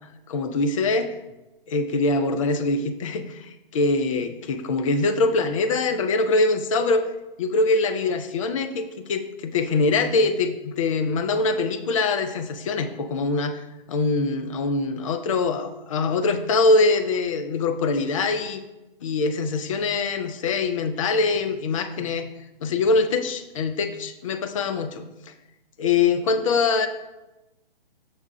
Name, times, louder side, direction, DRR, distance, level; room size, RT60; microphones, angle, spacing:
voice 1, 0.3-1.1 1.7-7.0 7.4-13.6 13.9-18.6 19.0-22.3 22.6-25.3 25.8-26.9, left 3 dB, 35° left, 9 dB, 0.5 m, -23 dB
6.9 x 3.5 x 5.2 m, 1.0 s
hypercardioid pair, 140°, 29 cm